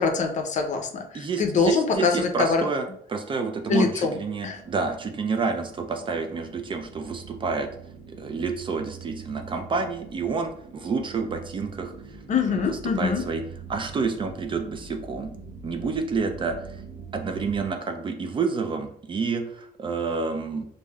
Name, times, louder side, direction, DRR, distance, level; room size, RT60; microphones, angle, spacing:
voice 1, 0.0-2.7 3.7-4.1 4.4-4.6 12.3-13.2, left 5 dB, 45° left, 4 dB, 0.5 m, -24 dB
voice 2, 1.1-7.7 8.1-11.9 12.4-13.4 13.7-15.3 15.6-16.6 17.1-20.7, right 4 dB, 30° right, 6 dB, 0.4 m, -29 dB
sound 1, 3.5-17.7, right 5 dB, 70° right, 0.8 m, -44 dB
3.2 x 2.6 x 2.2 m, 0.67 s
cardioid pair, 110°, 17 cm